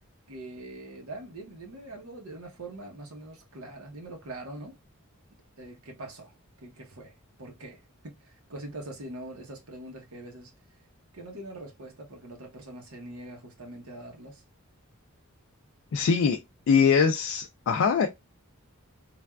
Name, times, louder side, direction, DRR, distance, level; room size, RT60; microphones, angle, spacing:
voice 1, 0.3-4.8 5.6-10.5 11.1-14.4, right 1 dB, 80° right, 0.8 m, -43 dB
voice 2, 15.9-16.4 16.7-18.1, left 6 dB, 70° left, 0.3 m, -22 dB
3.3 x 2.2 x 2.2 m
head